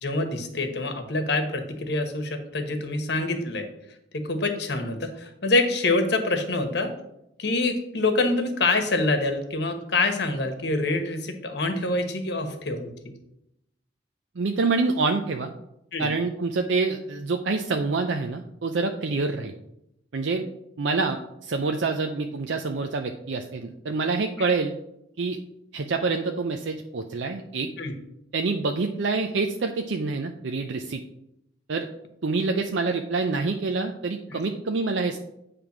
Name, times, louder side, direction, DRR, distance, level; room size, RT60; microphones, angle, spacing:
voice 1, 0.0-3.7 4.1-6.9 7.4-13.1 15.9-16.1 27.8-27.9 34.3-34.4, left 2 dB, 60° left, 5 dB, 1.2 m, -26 dB
voice 2, 14.4-15.5 16.0-19.5 20.1-20.5 20.8-24.7 25.2-25.4 25.7-27.7 28.3-31.0 31.7-31.9 32.2-35.2, right 3 dB, 75° right, 4 dB, 0.5 m, -26 dB
9.1 x 3.4 x 5.9 m, 0.81 s
head